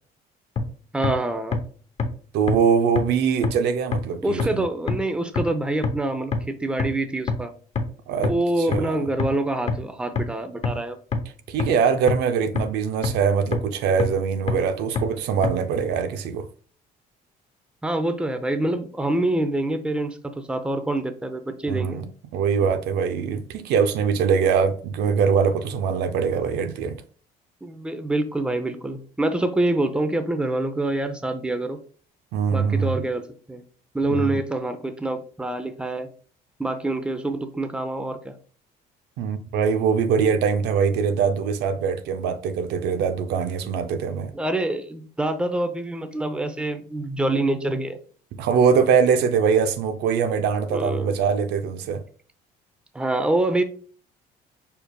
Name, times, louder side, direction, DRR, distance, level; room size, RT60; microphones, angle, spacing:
sound 1, 0.6-0.7 1.0-1.1 1.5-1.6 2.0-2.1 2.5-2.6 3.0-3.1 3.4-3.5 3.9-4.0 4.4-4.5 4.9-5.0 5.4-5.5 5.8-5.9 6.3-6.4 6.8-6.9 7.3-7.4 7.8-7.9 8.2-8.3 8.7-8.8 9.2-9.3 9.7-9.8 10.2-10.3 10.6-10.7 11.1-11.2 11.6-11.7 12.1-12.2 12.6-12.7 13.0-13.1 13.5-13.6 14.0-14.1 14.5-14.6 15.0-15.1 15.4-15.5, left 5 dB, 40° left, 0.8 m, -23 dB
voice 1, 0.9-1.6 4.2-7.5 8.2-11.0 17.8-22.0 27.6-31.8 32.5-33.6 33.9-36.1 36.6-38.3 44.3-48.0 50.7-51.2 52.9-53.6, right 2 dB, 5° right, 0.6 m, -26 dB
voice 2, 2.3-4.6 8.1-9.1 11.5-16.5 21.7-27.0 32.3-33.0 34.0-34.4 39.2-44.3 48.4-52.0, right 6 dB, 80° right, 0.7 m, -23 dB
5.1 x 4.6 x 2.3 m
cardioid pair, 110°, 17 cm